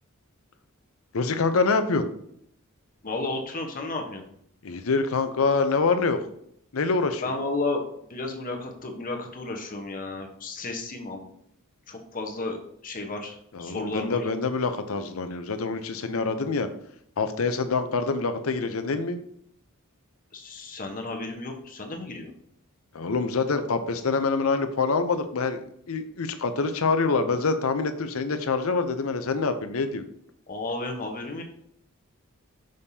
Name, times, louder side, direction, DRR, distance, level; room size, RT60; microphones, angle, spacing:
voice 1, 1.1-2.1 4.6-6.2 6.7-7.2 13.5-16.7 17.2-19.2 22.9-30.0, left 4 dB, 75° left, 9 dB, 0.7 m, -25 dB
voice 2, 3.0-4.2 7.2-7.8 8.1-11.3 11.9-12.6 12.8-14.3 20.3-22.3 30.5-31.4, left 2 dB, 40° left, 3 dB, 1.0 m, -33 dB
6.5 x 5.4 x 2.8 m, 0.70 s
head